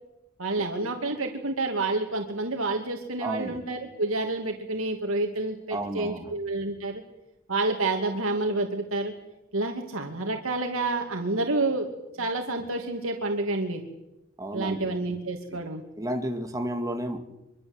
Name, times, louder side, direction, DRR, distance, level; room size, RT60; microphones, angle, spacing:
voice 1, 0.4-7.0 7.5-9.1 9.5-11.9 12.2-13.8 14.5-15.8, right 2 dB, 85° right, 3 dB, 2.7 m, -29 dB
voice 2, 3.2-3.6 5.7-6.3 14.4-14.9 15.5-15.6 16.0-17.2, right 1 dB, 15° right, 4 dB, 2.5 m, -32 dB
25.0 x 24.5 x 8.1 m, 0.97 s
head